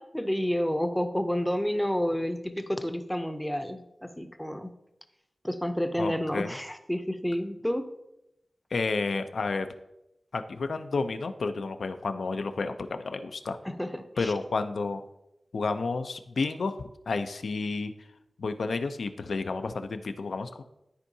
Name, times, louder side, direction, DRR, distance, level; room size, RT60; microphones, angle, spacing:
voice 1, 0.0-4.8 5.4-7.9 13.6-14.3, equal, 5° left, 8 dB, 0.6 m, -30 dB
voice 2, 6.0-6.5 8.7-9.7 10.3-13.6 14.2-15.0 15.5-17.9 18.4-20.6, left 4 dB, 80° left, 9 dB, 0.5 m, -31 dB
13.0 x 4.5 x 2.7 m, 0.88 s
wide cardioid pair, 100°, 0 cm